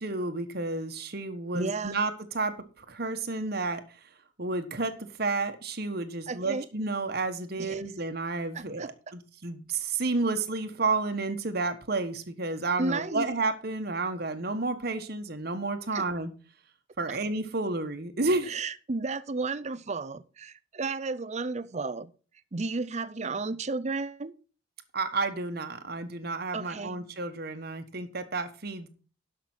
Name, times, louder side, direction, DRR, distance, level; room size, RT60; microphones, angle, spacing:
voice 1, 0.0-3.8 4.4-16.3 17.0-18.6 24.9-28.9, right 3 dB, 55° right, 7 dB, 1.3 m, -31 dB
voice 2, 1.5-2.0 6.3-6.7 7.6-7.8 8.5-8.9 12.8-13.3 15.9-16.0 17.1-17.2 18.5-22.1 22.5-24.3 26.5-27.0, right 3 dB, 35° right, 16 dB, 0.6 m, -33 dB
12.0 x 5.9 x 6.0 m, 0.36 s
head